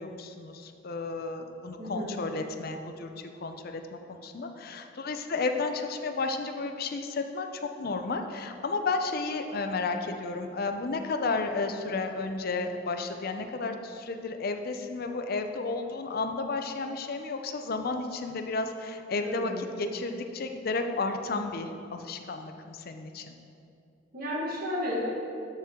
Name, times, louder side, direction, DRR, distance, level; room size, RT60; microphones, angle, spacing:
voice 1, 0.0-23.3, left 3 dB, 50° left, 6 dB, 0.5 m, -32 dB
voice 2, 1.8-2.2 11.9-12.0 19.2-19.6 24.1-25.0, left 1 dB, 45° right, -6 dB, 1.6 m, -33 dB
13.0 x 4.4 x 3.7 m, 2.6 s
head